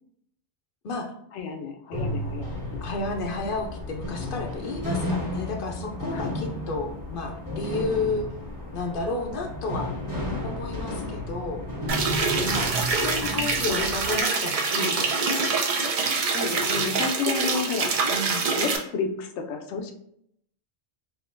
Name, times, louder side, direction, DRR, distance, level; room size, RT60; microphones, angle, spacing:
voice 1, 1.3-2.8 6.1-6.3 12.6-13.5 16.2-17.9 18.6-19.9, left 5 dB, 85° left, 4 dB, 0.9 m, -32 dB
sound 1, 1.9-14.2, left 1 dB, 20° right, 1.1 m, -33 dB
voice 2, 2.8-8.3 8.7-9.9 10.4-11.6 12.4-12.7 13.0-15.6 16.6-17.0 18.1-18.5, left 3 dB, 60° left, 2 dB, 0.6 m, -32 dB
sound 2, 11.9-18.8, right 4 dB, 70° right, 0.3 m, -25 dB
3.6 x 2.7 x 2.5 m, 0.72 s
omnidirectional pair, 1.2 m